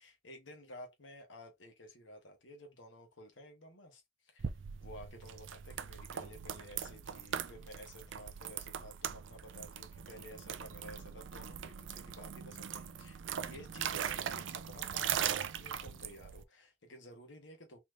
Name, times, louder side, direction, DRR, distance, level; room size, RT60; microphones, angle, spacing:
voice 1, 0.0-4.5 4.8-17.8, left 1 dB, 85° left, 1.5 m, -53 dB
sound 1, 4.4-16.4, right 8 dB, 90° right, 0.5 m, -40 dB
4.3 x 3.1 x 2.6 m
head